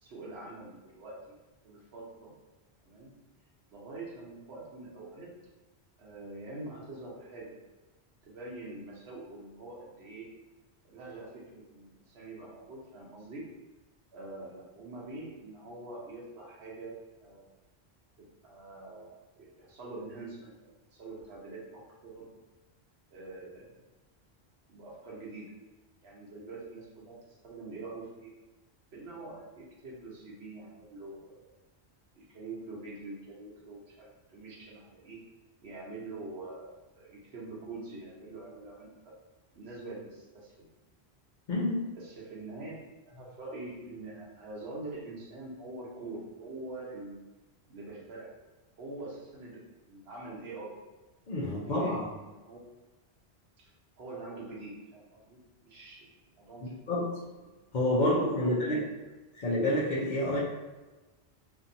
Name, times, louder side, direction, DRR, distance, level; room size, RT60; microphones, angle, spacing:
voice 1, 0.0-1.4 1.6-2.3 2.8-3.1 3.7-5.3 6.0-7.6 8.2-10.3 10.8-13.5 14.1-16.9 17.2-17.5 18.2-22.3 23.1-23.8 24.7-25.5 26.0-28.3 28.9-31.5 32.1-35.2 35.6-39.2 39.5-40.5 42.0-42.8 43.1-47.2 47.7-48.3 48.8-49.6 49.9-50.8 51.5-52.8 54.0-56.1 56.4-57.0 57.4-57.6 58.0-58.8, right 2 dB, 70° right, -4 dB, 1.0 m, -45 dB
voice 2, 41.5-41.9 51.3-52.0 56.6-57.1 57.7-58.8 59.4-60.4, left 1 dB, 50° left, -6 dB, 0.7 m, -28 dB
2.7 x 2.6 x 2.6 m, 1.2 s
omnidirectional pair, 1.1 m